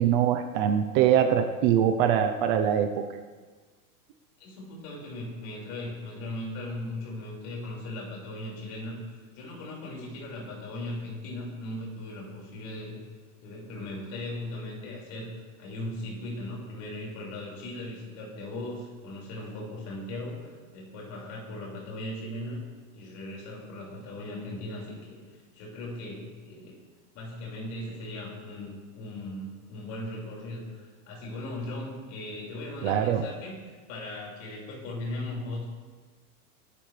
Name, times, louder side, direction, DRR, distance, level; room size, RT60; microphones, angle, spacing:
voice 1, 0.0-2.9 32.8-33.2, right 9 dB, 35° right, 6 dB, 0.7 m, -23 dB
voice 2, 4.4-13.0 13.4-15.3 15.6-22.6 22.9-26.8 27.1-35.7, left 1 dB, 40° left, -3 dB, 5.5 m, -38 dB
24.0 x 12.0 x 3.4 m, 1.4 s
supercardioid pair, 165°, 45 cm